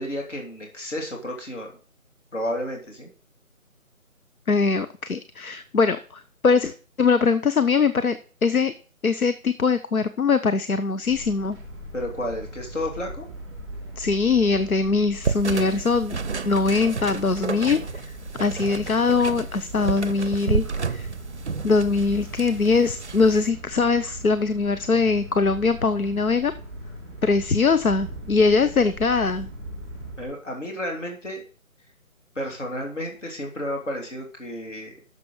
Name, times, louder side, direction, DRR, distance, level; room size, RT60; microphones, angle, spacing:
voice 1, 0.0-1.7 2.3-3.1 11.9-13.3 30.2-31.4 32.3-34.9, left 1 dB, 60° left, 1 dB, 2.8 m, -31 dB
voice 2, 4.5-8.7 9.0-11.6 14.0-16.2 16.4-21.1 21.6-26.5 27.2-29.5, left 4 dB, 85° left, 11 dB, 0.8 m, -22 dB
sound 1, 11.0-30.3, right 1 dB, ahead, 2.0 m, -39 dB
sound 2, 15.2-23.5, right 5 dB, 55° right, 0.5 m, -31 dB
9.7 x 6.9 x 5.4 m, 0.42 s
figure-of-eight pair, 160°, 42 cm